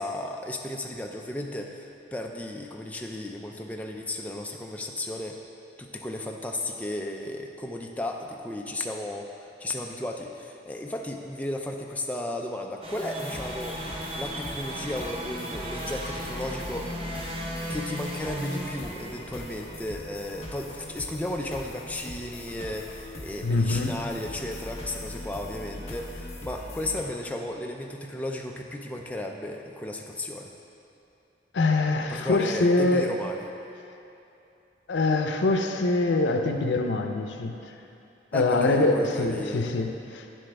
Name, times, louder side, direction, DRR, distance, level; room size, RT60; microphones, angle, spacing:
voice 1, 0.0-5.4 5.8-13.8 14.1-17.1 17.7-30.5 32.1-33.4 38.3-39.7, left 1 dB, 10° left, 1 dB, 0.4 m, -34 dB
sound 1, 12.8-19.8, equal, 30° right, 0.8 m, -36 dB
sound 2, 12.9-27.0, left 1 dB, 35° left, 0.9 m, -41 dB
voice 2, 23.4-24.0 31.5-33.1 34.9-37.6 38.3-40.3, left 2 dB, 90° left, 5 dB, 0.6 m, -24 dB
9.2 x 7.6 x 3.4 m, 2.8 s
head